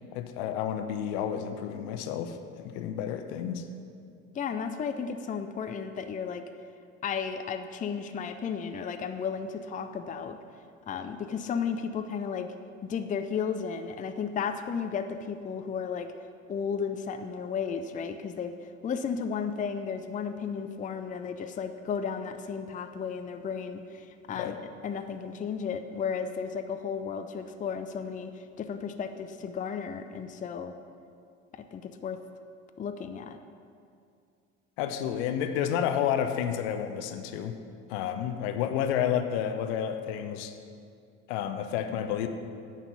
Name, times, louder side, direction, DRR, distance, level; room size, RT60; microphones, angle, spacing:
voice 1, 0.1-2.4 2.6-3.7 24.3-24.6 34.8-37.6 37.9-40.5 41.3-42.3, left 9 dB, 60° left, 8 dB, 0.8 m, -30 dB
voice 2, 4.3-6.5 7.0-10.4 10.9-12.5 12.9-16.1 16.5-18.5 18.8-24.6 24.8-30.7 31.5-32.2 32.8-33.4, left 6 dB, 20° left, 8 dB, 0.5 m, -34 dB
9.5 x 5.8 x 7.0 m, 2.4 s
figure-of-eight pair, 60°, 37 cm